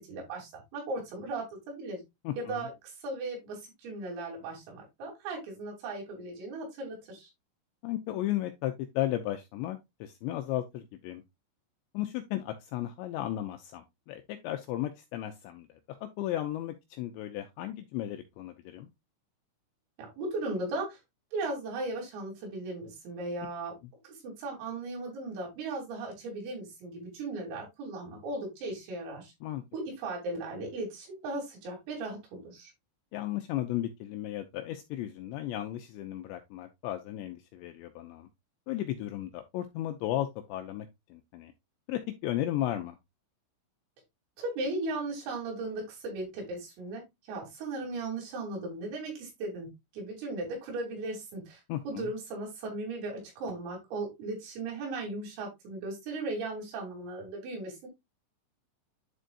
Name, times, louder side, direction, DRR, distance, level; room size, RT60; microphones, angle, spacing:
voice 1, 0.1-2.0 2.4-7.3 20.0-21.0 21.3-23.8 24.0-29.3 29.7-32.7 44.4-47.0 47.3-51.6 51.9-57.9, right 2 dB, 85° right, 6.1 m, -37 dB
voice 2, 2.2-2.7 7.8-11.2 11.9-18.9 29.4-29.6 33.1-38.3 38.7-41.5 41.9-43.0 51.7-52.1, left 13 dB, 80° left, 2.6 m, -35 dB
11.5 x 4.5 x 2.5 m
omnidirectional pair, 5.8 m